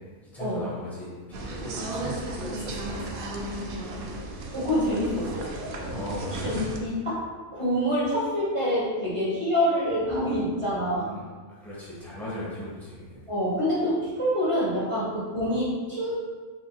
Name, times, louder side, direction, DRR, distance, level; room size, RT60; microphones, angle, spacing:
voice 1, 0.2-3.1 5.9-6.3 10.8-13.2, left 1 dB, ahead, -8 dB, 0.9 m, -38 dB
sound 1, 1.3-6.8, right 1 dB, 60° right, 0.6 m, -34 dB
voice 2, 4.5-5.5 6.2-11.1 13.3-16.1, equal, 25° right, -9 dB, 1.1 m, -26 dB
3.9 x 3.6 x 2.3 m, 1.5 s
omnidirectional pair, 1.3 m